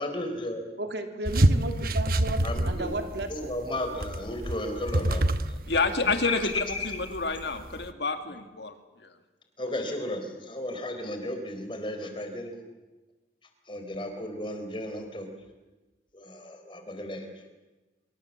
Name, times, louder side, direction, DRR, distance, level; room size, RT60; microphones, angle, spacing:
voice 1, 0.0-0.6 2.4-2.9 3.3-6.9 9.6-12.6 13.7-15.3 16.1-17.5, left 1 dB, 25° left, 5 dB, 4.0 m, -34 dB
voice 2, 0.8-3.5, right 2 dB, 70° right, 5 dB, 3.2 m, -34 dB
sound 1, 1.3-7.9, right 1 dB, 55° right, 1.1 m, -27 dB
voice 3, 5.7-6.5 6.8-8.7 9.0-9.1, left 4 dB, 70° left, 7 dB, 2.3 m, -28 dB
25.5 x 24.5 x 7.4 m, 1.2 s
head